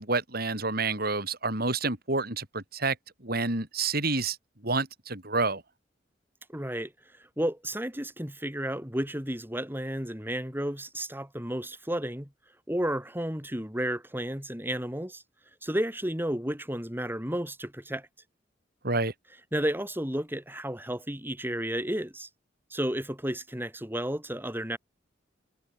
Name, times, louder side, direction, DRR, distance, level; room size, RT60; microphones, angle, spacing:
voice 1, 0.0-2.9 3.2-4.4 4.6-5.6 18.8-19.1, right 3 dB, 55° right, 6.8 m, -28 dB
voice 2, 6.5-6.9 7.4-12.3 12.7-15.2 15.6-18.1 19.5-22.3 22.7-24.8, right 1 dB, 10° right, 7.6 m, -32 dB
head